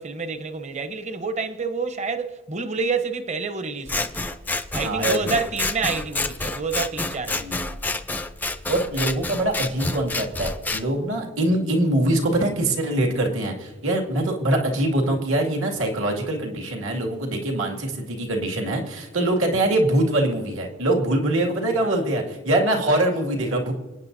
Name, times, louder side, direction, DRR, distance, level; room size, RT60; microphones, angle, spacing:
voice 1, 0.0-4.3 4.7-7.5 21.7-22.1, right 4 dB, 35° right, 0.8 m, -28 dB
Scissors, 3.9-10.8, left 2 dB, 10° left, 0.5 m, -28 dB
voice 2, 4.7-5.4 7.4-7.7 8.7-23.7, right 1 dB, 75° right, 2.2 m, -23 dB
27.0 x 9.3 x 2.7 m
head